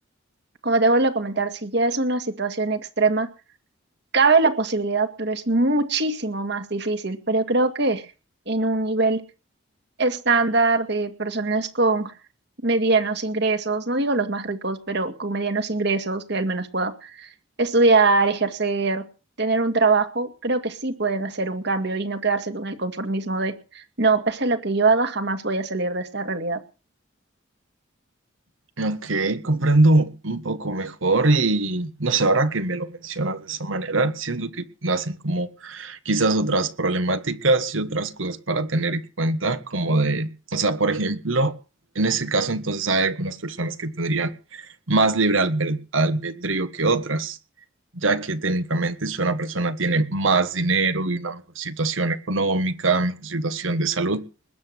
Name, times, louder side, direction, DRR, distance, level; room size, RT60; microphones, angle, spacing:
voice 1, 0.6-3.3 4.1-8.0 8.5-9.2 10.0-12.1 12.6-17.3 17.6-19.1 19.4-26.6, right 3 dB, 60° right, 2.2 m, -22 dB
voice 2, 28.8-41.5 41.9-47.4 47.9-54.2, right 2 dB, 75° right, 1.5 m, -23 dB
20.5 x 8.3 x 7.7 m
head